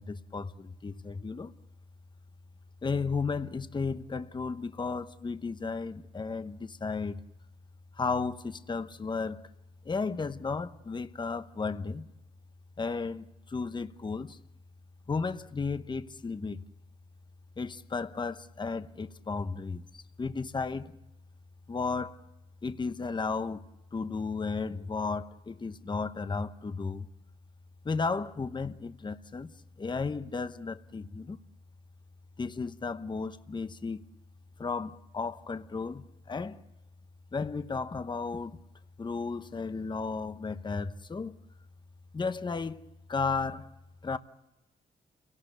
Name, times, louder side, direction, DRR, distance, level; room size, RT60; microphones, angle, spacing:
voice 1, 0.0-1.5 2.8-7.2 7.9-9.5 9.8-12.1 12.8-14.4 15.1-16.6 17.6-21.0 21.7-22.2 22.6-27.1 27.8-29.5 29.8-31.4 32.4-34.0 34.6-36.6 37.3-38.6 39.0-41.4 42.1-43.7 44.0-44.2, left 4 dB, 30° left, 0.9 m, -34 dB
29.0 x 18.0 x 8.0 m
cardioid pair, 85°, 16 cm